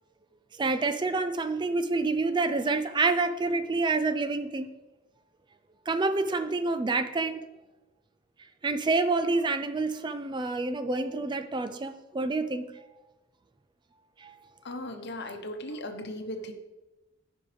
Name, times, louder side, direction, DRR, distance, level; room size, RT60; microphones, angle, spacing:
voice 1, 0.6-4.7 5.9-7.4 8.6-12.7 14.2-14.3, right 3 dB, 25° right, 0.4 m, -28 dB
voice 2, 14.6-16.5, left 1 dB, 60° left, 1.0 m, -37 dB
14.5 x 5.4 x 3.4 m
head